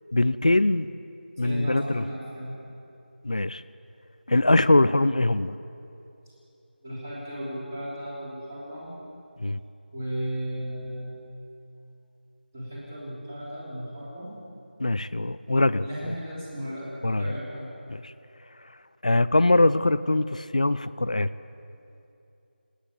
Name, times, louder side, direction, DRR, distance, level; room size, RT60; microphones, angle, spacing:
voice 1, 0.1-0.9 1.4-2.0 3.2-3.6 4.3-5.5 9.4-9.6 14.8-16.1 17.0-17.3 17.9-18.1 19.0-21.3, left 2 dB, 40° left, 15 dB, 0.5 m, -22 dB
voice 2, 1.4-2.6 6.8-8.9 9.9-11.2 12.5-14.3 15.8-17.7, equal, 15° right, -7 dB, 3.3 m, -35 dB
29.5 x 10.0 x 8.9 m, 2.8 s
figure-of-eight pair, 180°, 6 cm